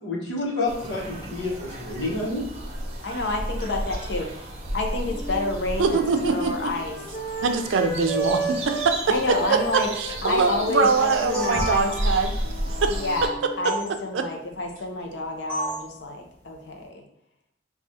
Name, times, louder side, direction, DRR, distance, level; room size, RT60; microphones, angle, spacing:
voice 1, 0.0-2.4, left 2 dB, 85° left, -3 dB, 1.0 m, -29 dB
sound 1, 0.7-13.3, right 1 dB, 35° right, 0.6 m, -33 dB
voice 2, 3.0-4.3 4.7-7.0 9.1-9.9 10.2-11.9 12.9-17.0, left 2 dB, 70° left, 2 dB, 0.6 m, -29 dB
sound 2, 5.1-8.9 9.2-13.6, right 4 dB, 40° left, 1.2 m, -34 dB
voice 3, 5.8-6.5 7.4-9.0 9.3-12.3 12.8-13.0 14.1-14.3, right 4 dB, 85° right, 7 dB, 0.4 m, -23 dB
sound 3, 11.0-12.2 13.6-13.8 15.5-15.9, right 1 dB, 5° left, 1.0 m, -31 dB
4.7 x 2.3 x 2.7 m, 0.72 s
head